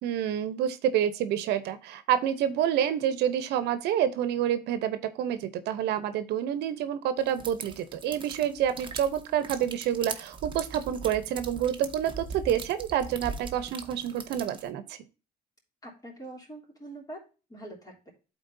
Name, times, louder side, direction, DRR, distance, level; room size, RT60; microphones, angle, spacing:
voice 1, 0.0-15.0, right 10 dB, 80° right, 12 dB, 0.9 m, -28 dB
sound 1, 7.3-14.7, right 4 dB, 30° right, 1.1 m, -40 dB
voice 2, 15.8-17.2 17.5-18.1, right 1 dB, 20° left, 0 dB, 3.5 m, -44 dB
11.5 x 4.3 x 2.7 m, 0.33 s
cardioid pair, 110°, 17 cm